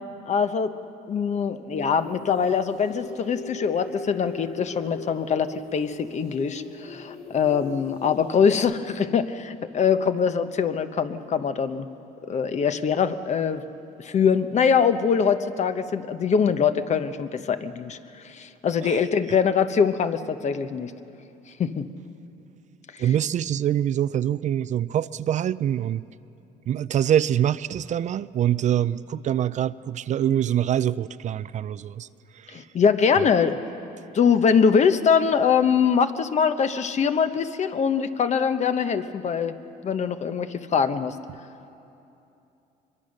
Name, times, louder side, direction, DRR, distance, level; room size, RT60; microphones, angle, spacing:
voice 1, 0.3-0.7 1.1-11.9 12.3-13.6 14.0-18.0 18.2-20.9 21.6-21.9 22.9-23.0 32.5-33.6 34.1-39.5 39.8-41.1, left 6 dB, 45° left, 10 dB, 1.0 m, -23 dB
sound 1, 1.7-8.6, left 3 dB, 60° left, 2.8 m, -40 dB
voice 2, 23.0-26.1 26.7-32.1 32.3-32.6 33.2-33.3, right 10 dB, 45° right, 16 dB, 0.4 m, -25 dB
23.5 x 23.0 x 6.5 m, 2.8 s
cardioid pair, 110°, 17 cm